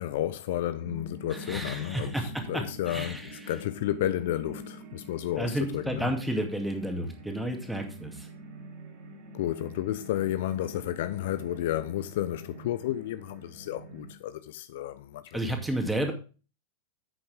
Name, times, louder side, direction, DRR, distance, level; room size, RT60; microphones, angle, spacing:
voice 1, 0.0-6.1 9.3-15.4, left 13 dB, 55° left, 0.6 m, -32 dB
sound 1, 0.8-14.2, right 1 dB, 45° right, 3.5 m, -46 dB
voice 2, 1.3-3.5 5.4-8.3 15.3-16.1, right 1 dB, 5° right, 2.4 m, -32 dB
10.5 x 8.5 x 3.5 m
figure-of-eight pair, 90°, 0 cm